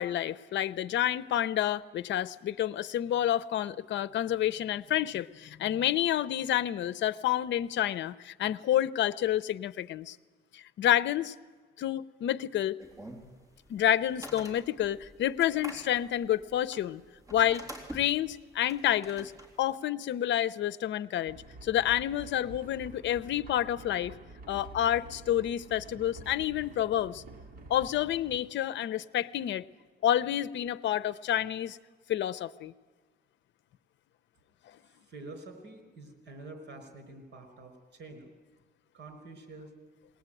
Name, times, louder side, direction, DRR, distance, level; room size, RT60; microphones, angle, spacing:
voice 1, 0.0-10.2 10.5-11.3 11.8-12.8 13.7-17.0 17.3-17.6 17.9-19.3 19.6-21.4 21.6-24.1 24.5-27.2 27.7-29.6 30.0-31.8 32.1-32.7, left 11 dB, 70° left, 17 dB, 0.7 m, -29 dB
sound 1, 12.8-19.7, equal, 15° right, 3.6 m, -47 dB
sound 2, 21.3-28.4, right 2 dB, 50° right, 2.0 m, -48 dB
voice 2, 35.1-38.3 38.9-39.7, right 2 dB, 65° right, 7 dB, 5.1 m, -47 dB
21.0 x 19.0 x 9.1 m, 1.3 s
cardioid pair, 135°, 19 cm